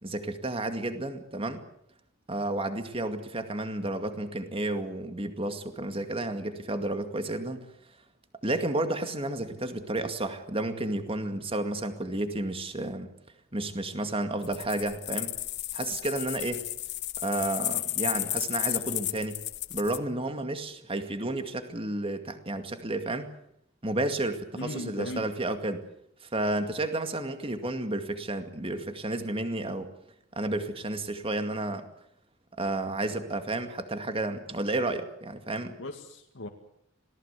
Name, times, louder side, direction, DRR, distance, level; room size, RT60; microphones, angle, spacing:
voice 1, 0.0-1.6 2.3-7.7 8.4-13.1 13.5-15.4 15.7-16.7 17.2-19.4 19.7-23.3 23.8-25.8 26.2-29.9 30.4-31.9 32.6-35.8, right 2 dB, 30° right, 8 dB, 2.2 m, -31 dB
sound 1, 14.4-20.0, left 15 dB, 60° left, 1.1 m, -33 dB
voice 2, 24.6-25.3 35.8-36.5, left 1 dB, 75° left, 1 dB, 2.1 m, -37 dB
26.0 x 18.5 x 8.3 m, 0.73 s
head